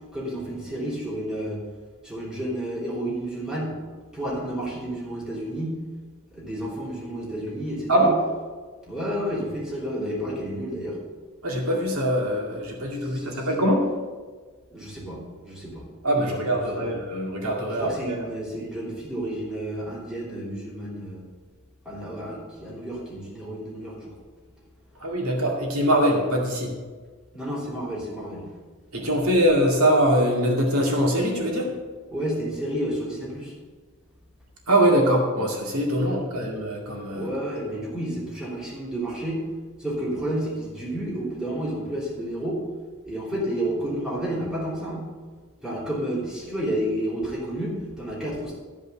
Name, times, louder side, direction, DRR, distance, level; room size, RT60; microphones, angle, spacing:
voice 1, 0.1-1.6 2.0-3.8 4.1-5.8 6.3-8.1 8.9-11.0 13.1-13.3 14.7-15.9 16.2-16.4 16.7-16.9 17.8-21.2 21.8-24.1 27.3-28.5 32.1-33.5 36.1-36.2 37.1-39.4 39.8-42.6 43.0-45.1 45.6-48.5, right 1 dB, 5° right, -5 dB, 3.1 m, -31 dB
voice 2, 11.4-13.9 16.0-18.3 25.0-26.7 28.9-31.7 34.7-37.3, right 1 dB, 80° right, -1 dB, 2.3 m, -23 dB
13.0 x 5.4 x 7.1 m, 1.5 s
head